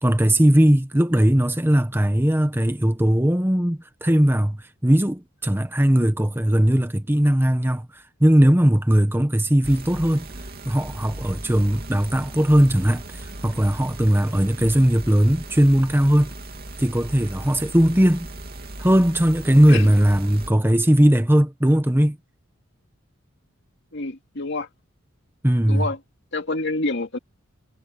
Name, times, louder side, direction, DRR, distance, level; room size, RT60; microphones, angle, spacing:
voice 1, 0.0-10.3 10.6-16.3 16.8-18.3 18.8-22.2 25.4-25.9, equal, 10° right, 1.1 m, -19 dB
sound 1, 9.6-20.5, right 1 dB, 50° right, 2.8 m, -37 dB
voice 2, 23.9-24.7 25.7-26.0 26.3-27.2, left 2 dB, 60° left, 2.3 m, -27 dB
head